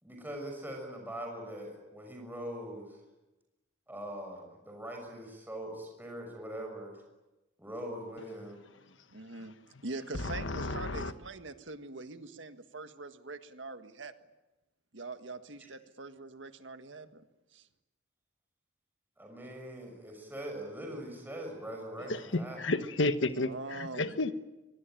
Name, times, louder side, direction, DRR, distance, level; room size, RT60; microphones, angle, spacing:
voice 1, 0.0-3.0 3.9-7.0 7.6-8.6 19.2-22.6, right 1 dB, 10° right, 1 dB, 6.1 m, -42 dB
voice 2, 9.1-9.5 9.8-14.1 14.9-17.2 17.5-17.7 23.4-24.2, right 3 dB, 80° right, 8 dB, 1.7 m, -43 dB
voice 3, 10.1-11.1 22.1-24.3, left 2 dB, 85° left, 10 dB, 1.3 m, -32 dB
24.0 x 23.5 x 9.1 m, 1.0 s
head